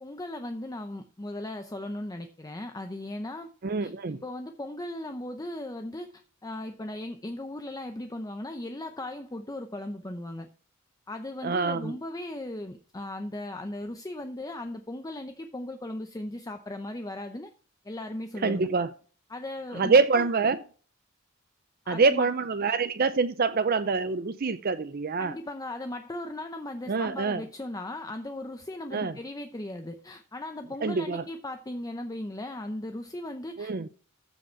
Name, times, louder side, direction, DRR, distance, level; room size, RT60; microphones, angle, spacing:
voice 1, 0.0-3.5 3.8-3.9 4.2-10.5 11.1-17.5 17.8-18.7 19.3-20.2 21.8-22.3 25.2-33.9, left 1 dB, 15° left, 0.7 m, -37 dB
voice 2, 3.6-4.2 11.4-12.0 18.4-18.9 19.7-20.6 21.9-25.3 26.9-27.4 28.9-29.2 30.8-31.2 33.6-33.9, right 4 dB, 45° right, 0.5 m, -25 dB
14.5 x 5.1 x 4.5 m
head